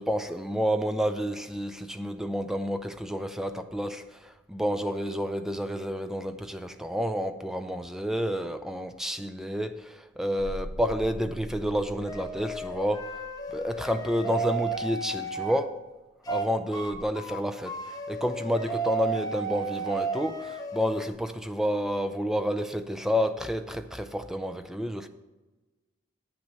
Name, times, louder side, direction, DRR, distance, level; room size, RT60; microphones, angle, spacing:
voice 1, 0.0-13.2 13.5-15.8 16.3-25.1, equal, ahead, 8 dB, 0.4 m, -30 dB
sound 1, 10.4-14.8 16.8-17.0, equal, 25° right, 2.8 m, -43 dB
sound 2, 12.1-15.6 16.2-16.5 16.7-16.9 17.2-21.1, right 4 dB, 20° left, 0.9 m, -33 dB
8.8 x 6.0 x 7.5 m, 1.2 s
head